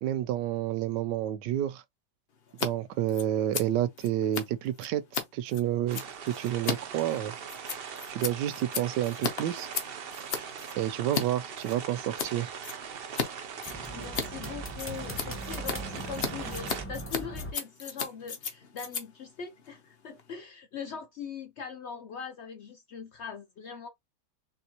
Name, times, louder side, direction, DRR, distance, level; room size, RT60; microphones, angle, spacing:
voice 1, 0.0-1.8 2.6-6.0 6.4-7.3 8.1-9.7 10.8-12.5, right 12 dB, 85° right, 1.2 m, -29 dB
Scissors, 2.5-2.7 2.9-11.2 11.6-12.3 12.6-13.3 13.5-20.3, left 5 dB, 45° left, 0.9 m, -36 dB
sound 1, 5.9-16.9, right 7 dB, 65° right, 0.5 m, -41 dB
sound 2, 13.7-17.5, right 1 dB, 10° left, 0.7 m, -40 dB
voice 2, 13.9-23.9, left 6 dB, 80° left, 0.6 m, -41 dB
4.3 x 3.4 x 2.9 m
omnidirectional pair, 1.9 m